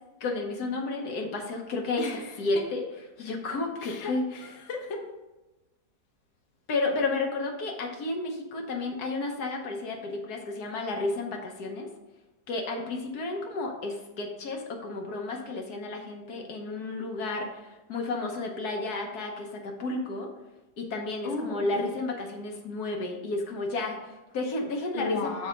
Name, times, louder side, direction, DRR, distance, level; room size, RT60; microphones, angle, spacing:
voice 1, 0.2-2.1 2.4-2.8 3.2-4.4 6.7-11.9 12.5-20.3 20.8-25.3, left 2 dB, 70° left, 2 dB, 1.4 m, -32 dB
voice 2, 2.0-2.4 3.8-5.0 21.2-21.9 24.9-25.5, left 4 dB, 50° left, 2 dB, 1.1 m, -34 dB
6.6 x 4.2 x 5.0 m, 1.0 s
omnidirectional pair, 1.8 m